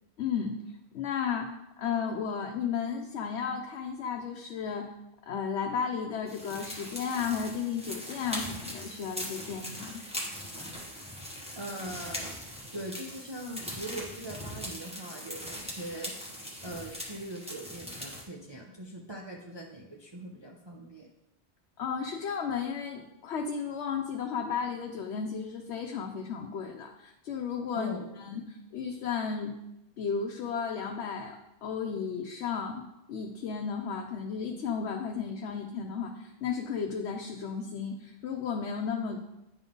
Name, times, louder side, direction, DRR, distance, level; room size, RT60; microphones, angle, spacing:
voice 1, 0.2-0.6 0.9-4.9 5.2-10.0 10.6-10.7 21.8-27.9 28.2-29.5 30.0-39.2, left 6 dB, 80° left, 2 dB, 0.9 m, -34 dB
sound 1, 6.3-18.2, equal, 5° right, 1.3 m, -40 dB
voice 2, 11.6-12.3 12.7-16.1 16.6-21.1 27.7-28.2, right 1 dB, 30° right, -2 dB, 0.6 m, -41 dB
9.8 x 3.9 x 3.7 m, 0.89 s
omnidirectional pair, 1.1 m